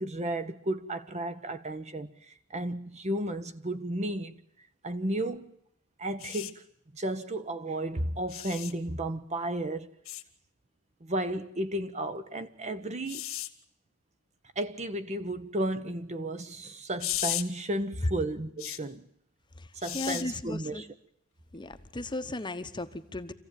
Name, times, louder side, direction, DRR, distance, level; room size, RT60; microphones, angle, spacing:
voice 1, 0.0-4.4 4.8-5.5 6.0-6.6 6.9-9.9 11.0-13.2 14.6-19.1 19.8-20.9, right 1 dB, 35° right, 1.1 m, -33 dB
sound 1, 6.2-6.5 8.3-8.7 10.0-10.2 13.1-13.5 17.0-17.4 18.6-18.8 19.8-20.2 21.7-21.9, left 14 dB, 80° left, 1.7 m, -34 dB
voice 2, 19.9-20.8 21.5-23.3, left 2 dB, 20° left, 1.1 m, -36 dB
26.0 x 15.5 x 9.2 m
head